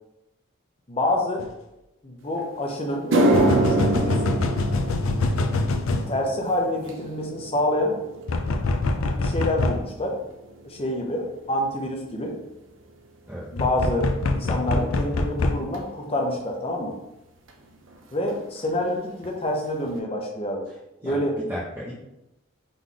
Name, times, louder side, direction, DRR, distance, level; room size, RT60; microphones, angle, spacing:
voice 1, 0.9-1.5 2.0-4.4 6.1-7.9 9.2-10.2 10.6-12.4 13.5-17.0 18.1-20.7 21.0-21.3, left 1 dB, 25° left, 1 dB, 0.7 m, -27 dB
sound 1, 1.4-1.5 3.3-6.1 8.3-9.8 13.6-15.6, left 3 dB, 80° left, 0.4 m, -24 dB
sound 2, 2.4-2.5 2.9-11.4 11.7-12.1 12.9-13.0 15.7-15.8 17.5-17.6 17.8-18.0 18.3-18.8 19.2-19.3 19.9-20.0, right 2 dB, 65° right, 0.6 m, -27 dB
voice 2, 21.0-21.9, equal, 10° right, -8 dB, 0.7 m, -34 dB
3.9 x 3.1 x 3.7 m, 0.92 s
head